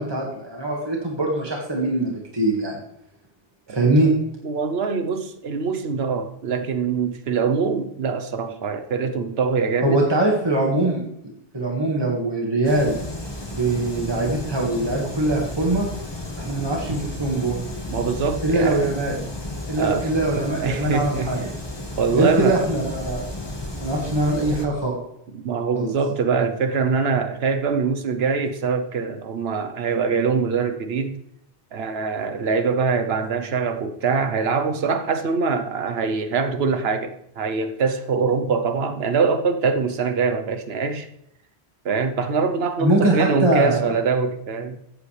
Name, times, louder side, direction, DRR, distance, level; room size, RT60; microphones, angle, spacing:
voice 1, 0.0-2.8 3.7-4.1 9.8-11.0 11.5-13.0 13.6-15.9 16.4-17.7 18.4-19.2 19.7-21.4 22.1-23.3 23.8-25.0 25.8-25.9 42.8-43.9, right 2 dB, 25° right, 1.9 m, -22 dB
voice 2, 3.7-4.1 4.4-10.1 17.9-18.9 19.8-21.3 22.0-22.7 25.3-31.2 31.7-41.1 41.8-44.8, right 5 dB, 70° right, 1.2 m, -23 dB
sound 1, 12.6-24.7, left 2 dB, 25° left, 1.5 m, -33 dB
14.5 x 8.4 x 3.3 m
omnidirectional pair, 1.1 m